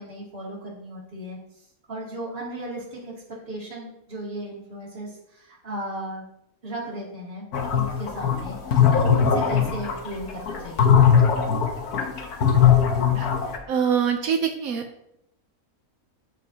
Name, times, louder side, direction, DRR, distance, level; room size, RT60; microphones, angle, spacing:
voice 1, 0.0-1.4 1.9-3.1 3.5-6.2 6.6-7.5 7.7-11.1, right 1 dB, 40° right, -5 dB, 2.7 m, -36 dB
sound 1, 7.5-13.6, left 7 dB, 80° left, 1.5 m, -19 dB
voice 2, 13.7-14.8, right 7 dB, 75° right, 5 dB, 1.2 m, -24 dB
13.5 x 5.1 x 2.8 m, 0.78 s
omnidirectional pair, 1.6 m